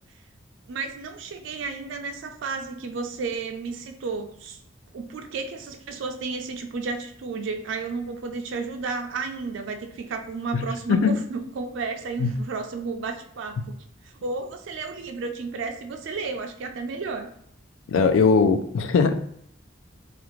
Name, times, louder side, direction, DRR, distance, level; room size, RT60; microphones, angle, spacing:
voice 1, 0.7-4.6 4.9-13.8 14.2-17.3, right 4 dB, 70° right, 5 dB, 0.3 m, -32 dB
voice 2, 10.5-11.2 12.2-12.3 17.9-19.1, left 5 dB, 80° left, 9 dB, 0.4 m, -20 dB
2.5 x 2.4 x 3.0 m, 0.68 s
head